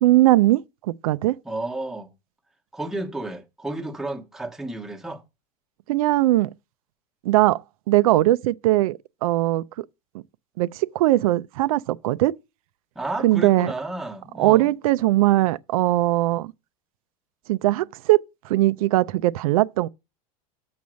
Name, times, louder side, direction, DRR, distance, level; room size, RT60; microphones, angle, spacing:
voice 1, 0.0-1.4 5.9-6.5 7.2-9.9 10.6-12.3 13.2-13.7 14.4-16.5 17.5-18.2 18.4-19.9, right 16 dB, 80° right, 0.4 m, -20 dB
voice 2, 1.4-2.1 2.7-5.2 12.9-14.7, right 2 dB, ahead, 1.0 m, -32 dB
7.1 x 4.1 x 6.2 m
supercardioid pair, 165°, 18 cm